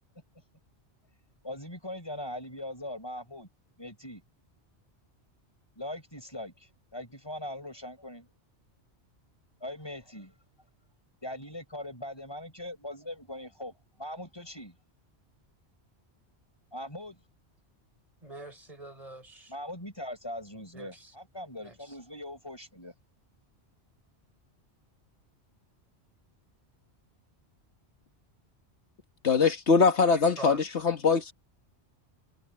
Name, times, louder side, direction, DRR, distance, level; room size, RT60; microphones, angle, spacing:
voice 1, 1.4-3.5 3.8-4.2 5.8-8.3 9.6-10.3 11.2-14.8 16.7-17.2 19.5-22.9, left 1 dB, 20° left, 6.0 m, -41 dB
voice 2, 18.2-19.5 20.7-21.1 21.6-21.9 30.1-30.6, right 2 dB, 30° right, 5.5 m, -44 dB
voice 3, 29.2-31.3, left 5 dB, 75° left, 1.8 m, -22 dB
omnidirectional pair, 1.2 m